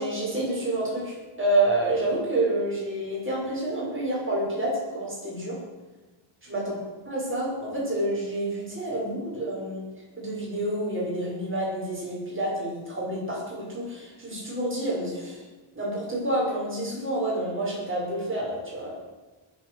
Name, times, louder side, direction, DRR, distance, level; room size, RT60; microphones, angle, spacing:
voice 1, 0.0-5.6 6.4-6.8 7.1-9.8 10.2-15.4 15.7-19.1, right 1 dB, 25° right, -4 dB, 6.3 m, -28 dB
21.0 x 8.1 x 6.4 m, 1.2 s
wide cardioid pair, 130°, 50 cm